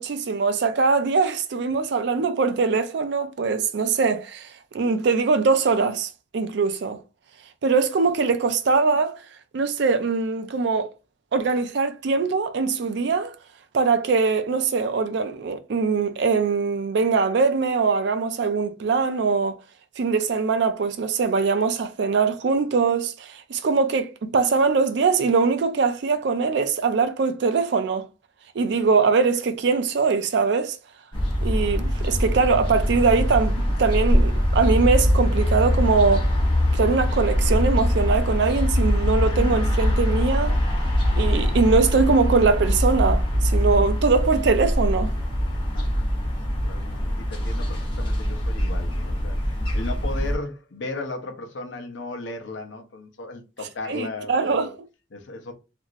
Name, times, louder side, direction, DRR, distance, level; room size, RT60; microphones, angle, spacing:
voice 1, 0.0-4.5 4.7-7.0 7.6-9.2 9.5-10.9 11.3-13.3 13.7-19.6 20.0-28.1 28.6-30.8 31.4-36.3 36.7-40.5 41.2-45.1 53.9-54.7, right 4 dB, 65° right, 0.4 m, -22 dB
sound 1, 31.1-50.3, equal, 25° left, 0.9 m, -23 dB
voice 2, 45.7-46.1 46.5-54.8 55.1-55.5, left 2 dB, 85° left, 0.6 m, -36 dB
2.9 x 2.6 x 2.5 m
head